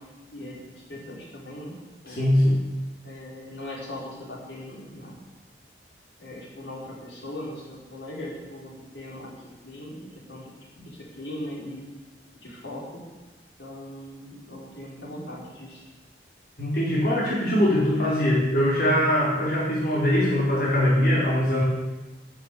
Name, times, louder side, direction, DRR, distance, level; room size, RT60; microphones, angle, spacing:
voice 1, 0.3-1.7 2.0-2.2 3.0-5.2 6.2-9.3 9.6-10.5 10.8-11.9 12.4-13.0 13.6-15.8, left 1 dB, 85° left, -4 dB, 5.2 m, -39 dB
voice 2, 2.1-2.7 16.6-21.6, left 1 dB, 55° left, -5 dB, 4.0 m, -22 dB
11.5 x 11.5 x 8.3 m, 1.2 s
head